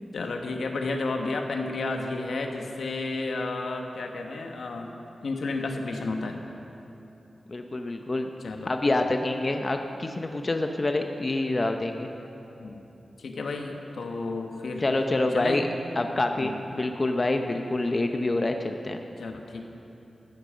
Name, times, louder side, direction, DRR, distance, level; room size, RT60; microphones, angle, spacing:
voice 1, 0.1-4.9 5.2-6.4 8.4-8.7 12.6-12.8 13.2-14.8 15.3-15.6 16.4-16.5 19.2-19.6, left 3 dB, 85° left, 3 dB, 1.2 m, -32 dB
voice 2, 7.5-8.3 8.7-12.1 14.8-15.7 16.0-19.0, left 2 dB, 35° left, 5 dB, 0.7 m, -27 dB
14.5 x 10.5 x 6.2 m, 2.9 s
wide cardioid pair, 110°, 0 cm